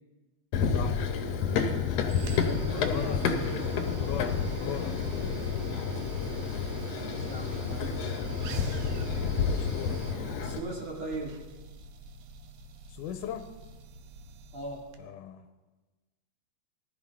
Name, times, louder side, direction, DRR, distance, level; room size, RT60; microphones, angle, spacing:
Run, 0.5-10.6, left 6 dB, 70° left, 1.9 m, -30 dB
voice 1, 0.7-1.0 2.8-3.7 4.0-5.4 9.4-10.0 12.9-13.5 15.0-15.5, left 9 dB, 90° left, 7 dB, 2.1 m, -39 dB
sound 1, 1.5-15.0, right 3 dB, 75° right, 2.3 m, -45 dB
voice 2, 2.4-4.0 6.1-6.6 7.0-8.1 10.4-11.5 14.5-14.9, right 2 dB, 45° right, -2 dB, 2.7 m, -40 dB
19.0 x 13.0 x 3.5 m, 1.2 s
omnidirectional pair, 3.6 m